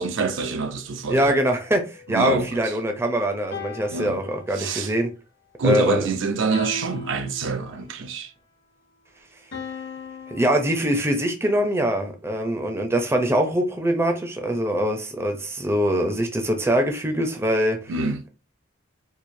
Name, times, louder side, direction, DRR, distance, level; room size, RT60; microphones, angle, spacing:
voice 1, 0.0-1.3 2.1-2.5 3.9-4.2 4.6-4.9 5.6-8.3 17.9-18.2, right 4 dB, 65° right, 0.5 m, -26 dB
voice 2, 1.1-5.1 5.6-6.1 10.3-17.9, equal, 10° right, 0.5 m, -23 dB
sound 1, 1.2-2.9 3.5-5.0 6.5-8.0 9.5-11.0, left 3 dB, 60° left, 0.9 m, -39 dB
4.6 x 2.6 x 2.6 m
head